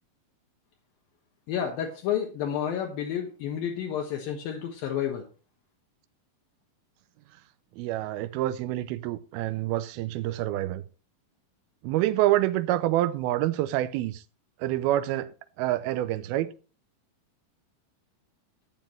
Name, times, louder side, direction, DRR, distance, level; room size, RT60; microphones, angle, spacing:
voice 1, 1.5-5.2, left 9 dB, 75° left, 2.9 m, -30 dB
voice 2, 7.8-10.8 11.8-14.2 14.6-15.3 15.6-16.5, right 14 dB, 85° right, 2.5 m, -27 dB
12.0 x 9.1 x 3.1 m
omnidirectional pair, 4.3 m